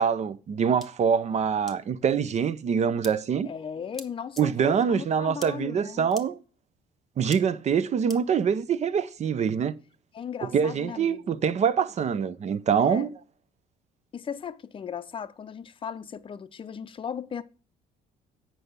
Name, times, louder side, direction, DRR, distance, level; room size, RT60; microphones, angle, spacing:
voice 1, 0.0-3.5 4.4-6.4 7.2-9.7 10.4-13.1, right 7 dB, 40° right, 0.6 m, -25 dB
sound 1, 0.8-0.9 1.7-1.8 3.0-3.1 3.9-4.1 4.4-4.5 5.4-5.5 6.1-6.2 7.3-7.4 8.1-8.2, left 1 dB, ahead, 1.0 m, -41 dB
voice 2, 3.4-6.1 10.1-11.4 12.8-13.1 14.1-17.4, left 7 dB, 30° left, 0.6 m, -37 dB
7.7 x 5.6 x 6.7 m
cardioid pair, 110°, 17 cm